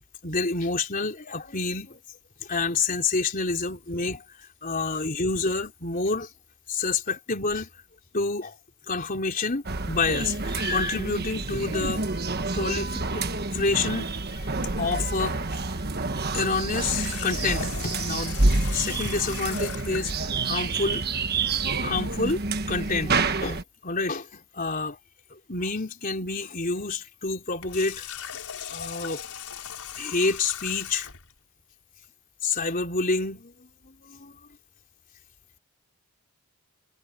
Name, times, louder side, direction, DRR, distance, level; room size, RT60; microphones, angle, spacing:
voice 1, 0.2-2.0 2.4-4.2 4.6-6.3 6.7-7.7 8.1-8.6 8.9-12.0 12.5-13.2 13.5-14.4 14.8-15.4 16.3-21.0 21.7-22.4 22.7-25.0 25.3-28.0 28.7-29.2 30.0-31.1 32.4-34.4, left 3 dB, 40° left, 3.8 m, -28 dB
sound 1, 9.6-23.6, right 3 dB, 45° right, 1.4 m, -28 dB
Water tap faucet, 16.7-20.1 27.5-31.3, left 9 dB, 75° left, 5.6 m, -38 dB
head